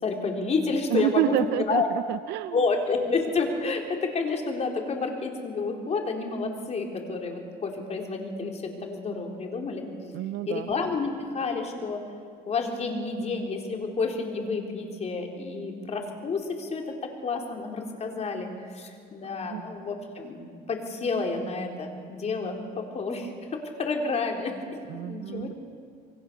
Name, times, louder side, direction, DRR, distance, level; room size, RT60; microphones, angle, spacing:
voice 1, 0.0-1.9 2.5-10.1 10.5-12.0 12.5-24.5 25.0-25.5, left 4 dB, 40° left, 2 dB, 4.0 m, -30 dB
voice 2, 0.9-2.6 10.1-10.7 19.5-19.6 24.9-25.5, right 16 dB, 80° right, 13 dB, 0.6 m, -28 dB
27.5 x 23.0 x 7.0 m, 2.2 s
cardioid pair, 110°, 17 cm